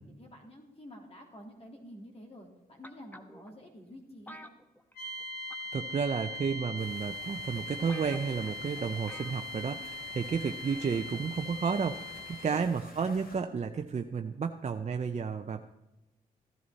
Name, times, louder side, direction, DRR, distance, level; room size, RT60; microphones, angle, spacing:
voice 1, 0.1-4.5, equal, 40° left, 1 dB, 3.5 m, -50 dB
sound 1, 2.8-3.5 4.3-5.2 5.5-5.8 6.7-6.8 7.3-7.4 7.6-7.7 7.9-8.5 9.1-9.4 9.7-9.8, equal, 10° left, 1.2 m, -49 dB
sound 2, 5.0-12.7, left 2 dB, 85° left, 1.8 m, -41 dB
voice 2, 5.7-15.6, right 6 dB, 45° right, 5 dB, 0.7 m, -32 dB
sound 3, 6.8-13.4, left 2 dB, 65° left, 2.5 m, -52 dB
15.0 x 11.0 x 4.2 m, 1.0 s
cardioid pair, 60°, 16 cm